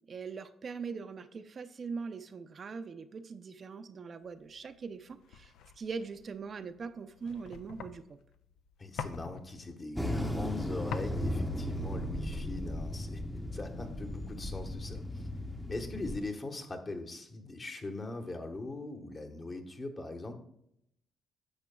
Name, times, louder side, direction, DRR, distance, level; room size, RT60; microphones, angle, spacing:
voice 1, 0.1-8.2, right 5 dB, 45° right, 9 dB, 0.5 m, -41 dB
sound 1, 4.4-13.4, left 7 dB, 85° left, 0.5 m, -47 dB
voice 2, 8.8-13.2 13.5-15.3 15.7-20.3, left 2 dB, 35° left, 4 dB, 1.3 m, -41 dB
sound 2, 9.9-16.2, left 1 dB, 5° left, 0.7 m, -36 dB
10.5 x 6.6 x 2.3 m, 0.75 s
cardioid pair, 90°, 0 cm